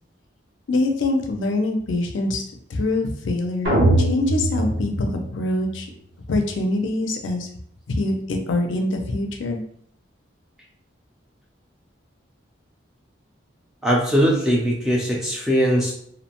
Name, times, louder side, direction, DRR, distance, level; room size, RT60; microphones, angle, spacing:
voice 1, 0.7-2.4 2.7-5.9 6.3-7.5 7.9-9.6, left 2 dB, 75° left, 3 dB, 0.4 m, -24 dB
sound 1, 3.6-5.8, right 1 dB, 65° right, 0.8 m, -22 dB
voice 2, 13.8-15.9, equal, 5° right, -3 dB, 0.4 m, -20 dB
2.6 x 2.1 x 2.9 m, 0.67 s
head